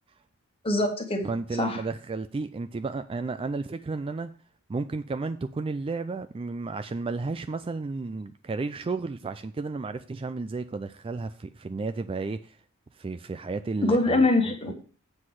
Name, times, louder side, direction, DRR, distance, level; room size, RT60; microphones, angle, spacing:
voice 1, 0.6-1.3 1.6-1.8 13.8-14.7, left 2 dB, 25° left, 1.4 m, -23 dB
voice 2, 1.2-4.3 4.7-12.5 13.0-14.3 14.7-14.8, right 3 dB, 25° right, 0.3 m, -32 dB
7.7 x 6.2 x 4.7 m
head